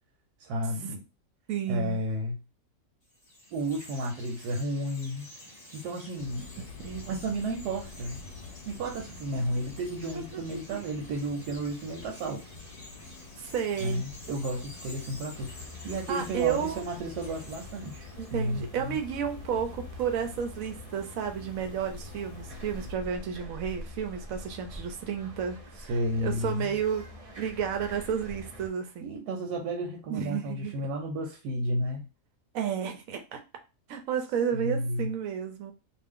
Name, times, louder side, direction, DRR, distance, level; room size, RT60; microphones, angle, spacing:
voice 1, 0.4-1.0 1.7-2.4 3.5-5.3 5.7-6.5 7.0-8.2 8.7-12.5 13.8-15.5 15.8-19.0 25.9-26.7 29.0-32.1 34.5-35.1, right 1 dB, 90° right, 1.2 m, -32 dB
voice 2, 1.5-2.0 6.8-7.2 10.1-10.4 10.7-10.8 13.4-14.1 16.1-16.9 18.2-27.0 27.4-29.1 30.1-30.8 32.5-33.4 33.9-35.7, right 8 dB, 70° right, 0.9 m, -32 dB
Chirp tweet, 3.0-18.6, left 1 dB, 30° left, 0.9 m, -50 dB
sound 1, 6.2-22.9, left 5 dB, 75° left, 1.0 m, -48 dB
sound 2, 15.3-28.7, left 1 dB, 40° right, 0.5 m, -45 dB
2.6 x 2.4 x 3.5 m
omnidirectional pair, 1.7 m